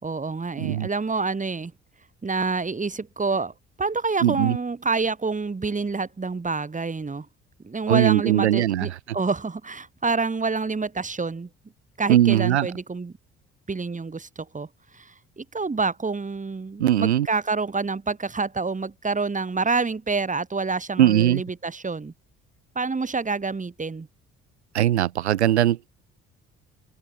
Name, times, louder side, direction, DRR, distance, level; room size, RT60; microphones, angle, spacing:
voice 1, 0.0-1.7 2.2-3.5 3.8-7.3 7.6-11.5 12.0-13.1 13.7-14.7 14.9-22.1 22.7-24.1, right 4 dB, 25° right, 2.6 m, -27 dB
voice 2, 0.6-0.9 4.2-4.6 7.9-8.9 12.1-12.7 16.8-17.3 21.0-21.4 24.7-25.9, right 12 dB, 90° right, 0.7 m, -20 dB
hypercardioid pair, 50°, 33 cm